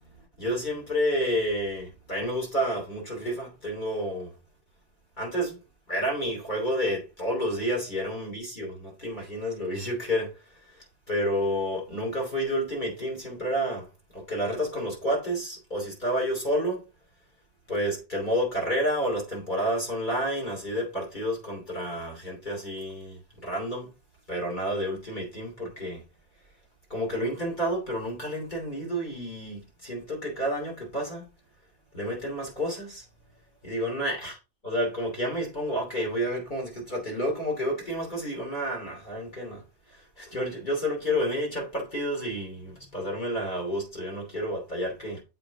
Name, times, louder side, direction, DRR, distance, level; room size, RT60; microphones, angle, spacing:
voice 1, 0.1-4.3 5.2-5.6 5.9-13.9 14.1-16.8 17.7-23.9 24.3-26.0 26.9-31.3 31.9-33.0 33.6-34.3 34.6-39.6 39.9-45.2, equal, 40° left, 3.0 m, -30 dB
7.5 x 5.0 x 3.6 m
omnidirectional pair, 1.2 m